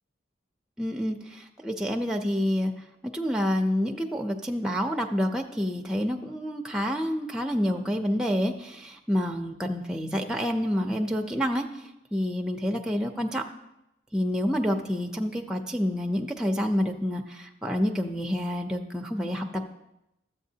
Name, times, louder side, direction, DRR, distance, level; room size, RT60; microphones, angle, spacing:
voice 1, 0.8-2.7 3.0-11.7 12.1-13.4 14.1-19.7, equal, 5° right, 2 dB, 0.4 m, -28 dB
12.5 x 7.9 x 2.8 m, 0.89 s
head